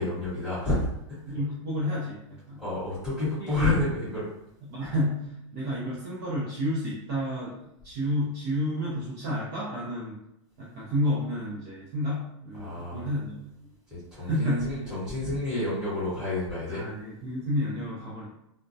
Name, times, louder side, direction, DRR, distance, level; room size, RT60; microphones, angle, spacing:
voice 1, 0.0-1.3 2.6-4.3 12.6-13.1 13.9-16.8, left 2 dB, 5° right, -12 dB, 1.1 m, -29 dB
voice 2, 1.2-2.6 3.4-3.7 4.6-10.2 10.6-13.7 14.2-14.8 16.7-18.3, equal, 35° right, -7 dB, 0.6 m, -31 dB
2.3 x 2.1 x 2.6 m, 0.84 s
supercardioid pair, 175°, 16 cm